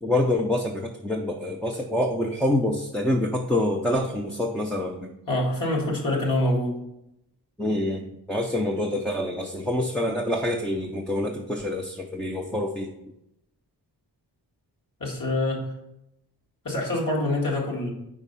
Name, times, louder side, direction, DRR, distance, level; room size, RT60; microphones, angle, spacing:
voice 1, 0.0-5.1 7.6-12.9, left 1 dB, 5° left, 1 dB, 0.4 m, -26 dB
voice 2, 5.3-6.8 15.0-15.6 16.6-17.9, left 1 dB, 55° left, -2 dB, 2.0 m, -25 dB
4.9 x 4.5 x 5.4 m, 0.84 s
wide cardioid pair, 105°, 40 cm